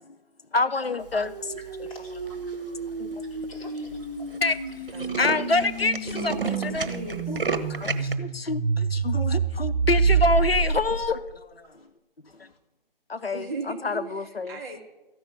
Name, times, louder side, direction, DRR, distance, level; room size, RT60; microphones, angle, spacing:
voice 1, 0.5-1.6 3.0-3.1 4.4-4.5 5.2-6.9 7.3-7.4 7.8-7.9 8.2-11.2 11.6-11.7 13.1-13.5 13.8-14.6, left 3 dB, 85° left, 12 dB, 0.7 m, -26 dB
sound 1, 1.2-11.3, right 5 dB, 45° right, 1.7 m, -28 dB
voice 2, 1.9-4.7 6.4-6.5 6.7-7.0 7.7-8.0 11.6-11.9 12.2-12.6 13.2-13.4, left 2 dB, 35° left, -2 dB, 3.8 m, -51 dB
Tools, 2.1-2.5 3.1-3.2 3.4-3.5 3.8-4.0 4.3-4.4 4.7-8.1, right 4 dB, 65° right, 1.3 m, -32 dB
voice 3, 4.9-5.3 6.2-7.4 13.3-14.8, right 2 dB, 20° right, -1 dB, 1.6 m, -37 dB
14.0 x 6.1 x 9.9 m, 1.0 s
figure-of-eight pair, 145°, 29 cm